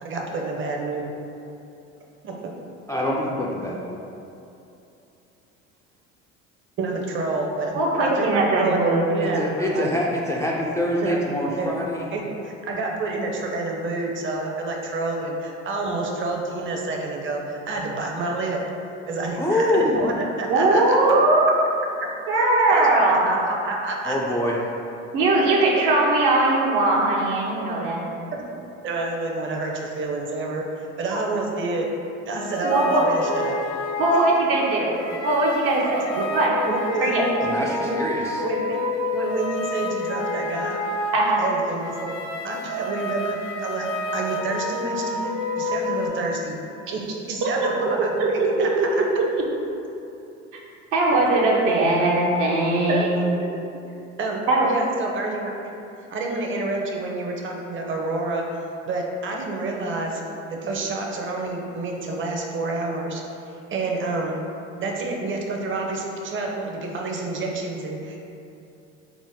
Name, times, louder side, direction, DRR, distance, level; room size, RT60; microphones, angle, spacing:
voice 1, 0.0-1.1 2.2-2.5 6.8-9.9 11.0-11.2 11.6-11.7 12.1-18.6 19.1-21.0 22.4-24.2 28.3-28.5 28.8-31.9 32.3-33.6 36.2-36.3 36.7-37.2 37.7-38.1 38.4-38.8 39.1-40.8 41.4-42.2 42.4-43.9 44.1-46.6 46.9-49.1 52.9-53.6 54.2-55.5 56.1-58.5 58.8-60.2 60.5-63.2 63.7-64.4 64.8-68.2, right 3 dB, 35° right, 0 dB, 0.7 m, -28 dB
voice 2, 2.9-4.0 9.2-12.1 19.4-20.0 24.0-24.6 37.4-38.4, left 1 dB, 10° left, -4 dB, 0.3 m, -25 dB
voice 3, 7.7-9.0 20.5-21.5 22.3-23.3 25.1-28.1 32.6-33.0 34.0-35.0 35.2-36.5 37.0-37.2 41.1-41.4 47.4-47.9 48.2-48.9 49.2-49.3 50.9-53.3 54.5-54.7, right 2 dB, 70° right, -3 dB, 0.9 m, -20 dB
sound 1, 32.4-46.1, left 1 dB, 80° left, 0.6 m, -29 dB
4.7 x 2.1 x 3.6 m, 2.8 s
hypercardioid pair, 70°, 35 cm